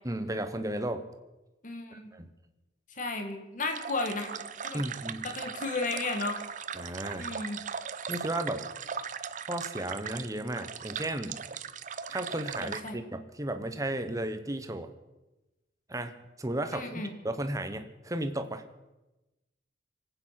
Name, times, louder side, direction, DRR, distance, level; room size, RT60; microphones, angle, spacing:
voice 1, 0.0-1.0 1.9-2.3 4.7-5.3 6.7-7.3 8.1-8.7 9.5-11.4 12.1-14.9 15.9-16.1 16.4-18.6, right 1 dB, 20° right, 8 dB, 1.1 m, -34 dB
voice 2, 1.6-2.1 3.0-4.3 4.6-4.8 5.2-6.4 7.2-7.6 12.6-13.0 16.7-17.1, left 3 dB, 45° left, 5 dB, 1.9 m, -34 dB
sound 1, 3.6-12.9, right 7 dB, 40° right, 0.6 m, -39 dB
25.0 x 9.0 x 5.9 m, 1.0 s
head